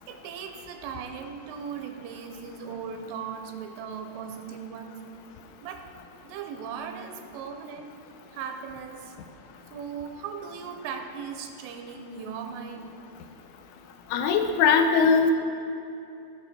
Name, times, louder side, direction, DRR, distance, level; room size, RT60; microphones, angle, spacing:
voice 1, 0.1-5.0 5.6-5.9 6.2-7.9 8.3-9.2 9.7-12.9, right 7 dB, 85° right, 5 dB, 3.1 m, -38 dB
voice 2, 14.1-15.3, left 6 dB, 80° left, 6 dB, 3.0 m, -20 dB
17.0 x 6.7 x 4.3 m, 2.8 s
omnidirectional pair, 5.8 m